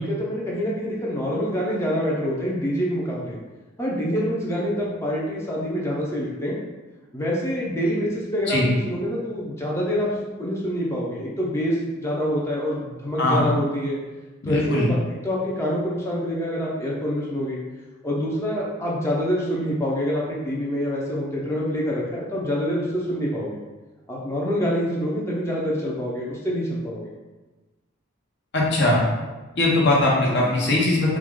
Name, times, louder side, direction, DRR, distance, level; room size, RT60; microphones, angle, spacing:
voice 1, 0.0-3.4 3.8-6.6 7.1-14.0 14.4-15.0 15.2-17.6 18.0-23.6 24.1-27.1 30.1-30.4, equal, 10° left, -5 dB, 0.6 m, -26 dB
voice 2, 14.4-14.9 28.5-29.0 29.6-31.2, left 2 dB, 50° left, -5 dB, 1.1 m, -20 dB
4.8 x 2.4 x 3.7 m, 1.2 s
head